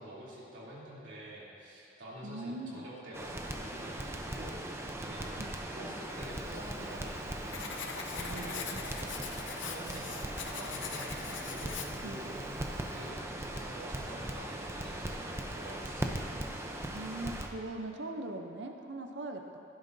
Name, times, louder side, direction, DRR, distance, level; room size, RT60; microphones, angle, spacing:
voice 1, 0.0-9.2 9.6-16.1, right 1 dB, 85° right, -7 dB, 3.0 m, -47 dB
voice 2, 2.2-2.9 5.4-5.5 8.7-8.8 12.0-12.2 16.9-19.6, right 2 dB, 65° right, 4 dB, 0.6 m, -40 dB
Crackle, 3.1-17.5, right 1 dB, 15° right, 0.6 m, -39 dB
Writing, 6.4-13.1, left 6 dB, 80° left, 0.8 m, -43 dB
16.5 x 11.0 x 2.7 m, 2.8 s
head